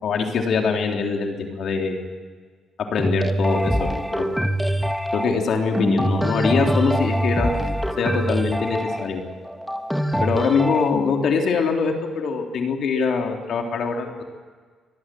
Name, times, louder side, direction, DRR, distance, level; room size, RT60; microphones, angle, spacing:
voice 1, 0.0-2.0 2.9-4.3 5.1-7.5 8.0-9.2 10.2-14.1, left 5 dB, 65° left, 3 dB, 3.6 m, -23 dB
sound 1, 3.0-10.9, equal, ahead, 1.6 m, -24 dB
25.0 x 19.0 x 7.8 m, 1.5 s
cardioid pair, 90°, 0 cm